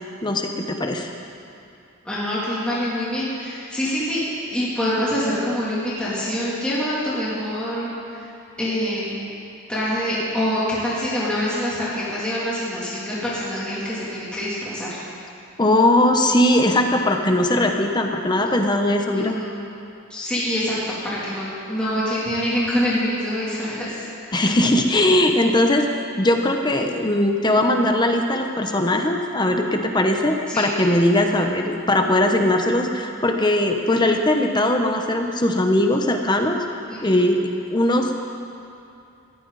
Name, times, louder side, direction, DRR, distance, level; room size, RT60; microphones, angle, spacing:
voice 1, 0.2-1.1 15.6-19.3 24.3-25.9 26.2-36.6 37.0-38.3, left 1 dB, 20° left, 4 dB, 0.9 m, -20 dB
voice 2, 2.0-7.9 8.6-9.2 9.7-14.9 19.1-19.6 20.1-20.7 21.0-24.5 30.5-30.8 36.9-37.2, equal, 5° left, -10 dB, 3.0 m, -25 dB
19.5 x 14.5 x 4.1 m, 2.6 s
head